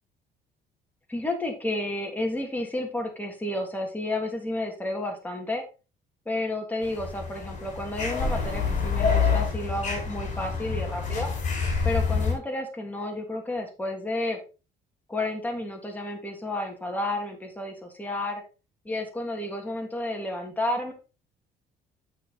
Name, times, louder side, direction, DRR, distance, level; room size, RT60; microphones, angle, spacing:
voice 1, 1.1-5.6 6.3-11.3 11.8-14.4 15.1-18.4 18.8-20.9, left 1 dB, 10° left, 1 dB, 2.8 m, -31 dB
sound 1, 6.8-12.3, left 5 dB, 45° left, 4.3 m, -27 dB
8.4 x 6.5 x 4.1 m, 0.32 s
cardioid pair, 110°, 17 cm